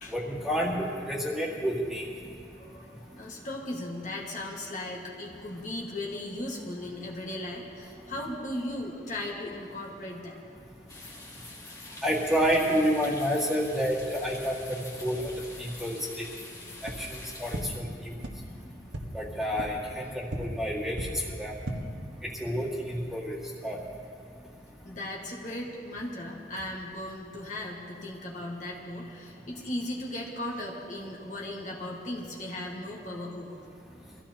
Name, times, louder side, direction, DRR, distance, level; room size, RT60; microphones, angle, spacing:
voice 1, 0.1-2.0 12.0-15.3 15.6-16.3 16.8-18.1 19.1-21.5 22.2-23.4 23.6-23.8, equal, ahead, -5 dB, 2.1 m, -29 dB
voice 2, 2.5-10.4 11.8-12.0 18.5-18.6 24.8-33.6, left 1 dB, 45° left, -3 dB, 1.7 m, -37 dB
sound 1, 10.9-17.6, left 2 dB, 20° left, 1.7 m, -46 dB
sound 2, 16.8-16.9 17.5-17.6 18.2-18.3 18.9-19.0 19.6-19.7 20.3-20.4 20.9-21.0 21.5-21.7, right 1 dB, 85° right, 1.4 m, -34 dB
23.5 x 15.0 x 2.9 m, 2.4 s
head